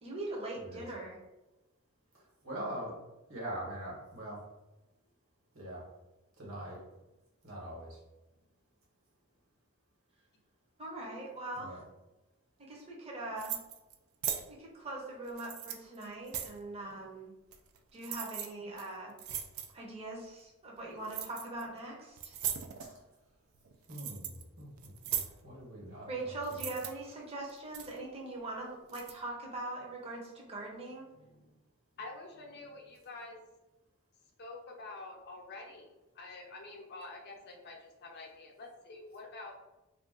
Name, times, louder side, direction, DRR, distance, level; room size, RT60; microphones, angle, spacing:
voice 1, 0.0-1.2 10.8-11.8 12.7-13.6 14.5-17.3 17.9-19.2 19.7-22.4 26.1-31.1, right 2 dB, 30° right, -2 dB, 0.6 m, -41 dB
voice 2, 2.1-3.0 3.3-4.4 5.5-5.8 6.4-6.8 7.4-8.0 11.5-11.8 22.8-22.9 23.9-26.8, right 1 dB, 70° right, -4 dB, 1.3 m, -43 dB
sound 1, 13.4-13.9 14.2-14.4 15.3-16.6 17.5-17.8 18.0-18.5 18.8-18.9 19.2-19.7 21.0-21.6 22.2-22.9 23.5-24.4 24.8-25.3 26.4-26.9 27.5-28.0 28.9-29.1, right 9 dB, 85° right, 0.4 m, -38 dB
voice 3, 31.1-31.5 32.0-33.4 34.4-39.5, left 3 dB, 50° left, 1 dB, 0.5 m, -48 dB
2.4 x 2.3 x 3.7 m, 1.0 s
head